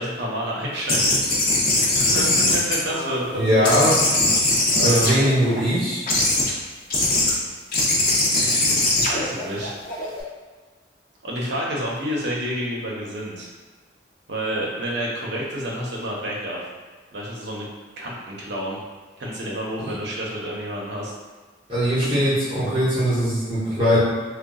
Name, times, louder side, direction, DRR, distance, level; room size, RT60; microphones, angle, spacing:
voice 1, 0.0-1.6 1.9-3.8 4.7-5.2 8.4-8.7 9.1-9.7 11.2-13.5 14.3-16.7 17.1-17.7 18.0-18.8 19.2-21.1, equal, 65° right, -4 dB, 0.7 m, -29 dB
sound 1, 0.9-3.3 3.6-5.6 6.1-6.5 6.9-7.3 7.7-10.2, left 2 dB, 45° left, 0.5 m, -21 dB
voice 2, 3.3-3.9 4.8-6.0 19.8-19.9 21.7-24.0, equal, 25° right, -12 dB, 0.8 m, -20 dB
3.7 x 2.2 x 2.3 m, 1.4 s
head